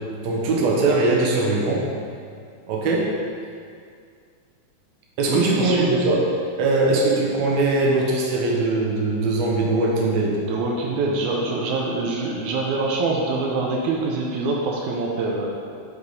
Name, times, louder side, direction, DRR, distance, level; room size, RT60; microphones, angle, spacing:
voice 1, 0.2-1.8 2.7-3.1 5.2-6.3 6.6-10.4, right 2 dB, 70° right, -2 dB, 2.2 m, -21 dB
voice 2, 5.3-5.9 10.4-15.8, right 3 dB, 90° right, -1 dB, 2.1 m, -24 dB
8.2 x 4.8 x 4.0 m, 2.2 s
omnidirectional pair, 3.4 m